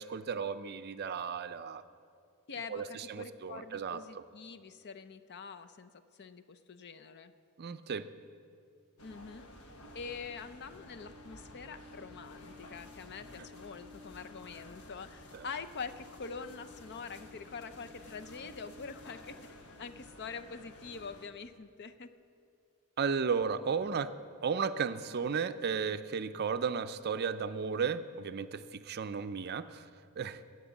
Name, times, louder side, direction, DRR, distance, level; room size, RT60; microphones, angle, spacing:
voice 1, 0.0-1.8 2.7-4.0 7.6-8.1 15.3-15.5 23.0-24.1 24.4-29.9 30.2-30.4, right 6 dB, 45° right, 11 dB, 0.5 m, -34 dB
voice 2, 2.5-7.3 9.0-9.5 9.9-22.1, left 5 dB, 50° left, 10 dB, 0.5 m, -45 dB
sound 1, 9.0-21.3, left 1 dB, 85° left, 1.3 m, -52 dB
15.0 x 6.0 x 8.6 m, 2.5 s
head